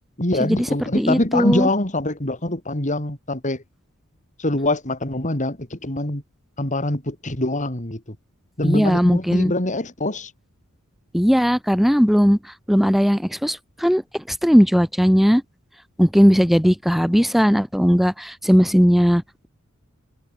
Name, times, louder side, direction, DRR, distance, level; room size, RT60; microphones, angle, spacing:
voice 1, 0.2-3.6 4.4-6.2 6.6-8.2 8.6-10.3, left 1 dB, 35° left, 3.7 m, -24 dB
voice 2, 1.0-1.7 8.6-9.5 11.1-12.4 12.7-15.4 16.0-19.5, equal, ahead, 1.7 m, -18 dB
head